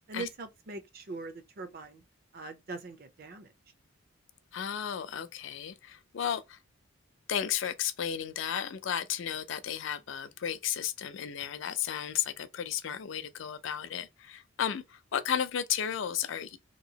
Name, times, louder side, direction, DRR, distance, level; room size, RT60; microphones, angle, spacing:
voice 1, 0.1-2.0 2.3-3.5, right 3 dB, 45° right, 0.5 m, -42 dB
voice 2, 4.5-6.6 7.3-16.6, left 9 dB, 65° left, 0.4 m, -33 dB
2.9 x 2.7 x 2.7 m
head